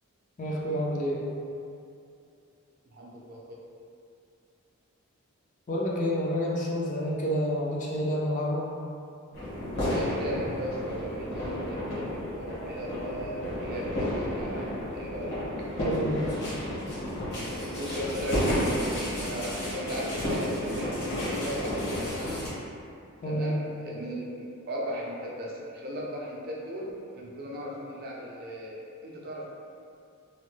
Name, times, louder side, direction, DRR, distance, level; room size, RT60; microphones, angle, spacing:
voice 1, 0.4-1.2 5.7-8.7 15.8-16.3 23.2-23.6, equal, 35° left, -4 dB, 0.4 m, -29 dB
voice 2, 2.9-3.6 9.8-15.3 17.8-22.4 23.2-29.5, equal, 45° right, -3 dB, 0.4 m, -37 dB
sound 1, 9.3-22.5, left 1 dB, 60° left, 1.2 m, -32 dB
3.0 x 2.1 x 3.2 m, 2.5 s
head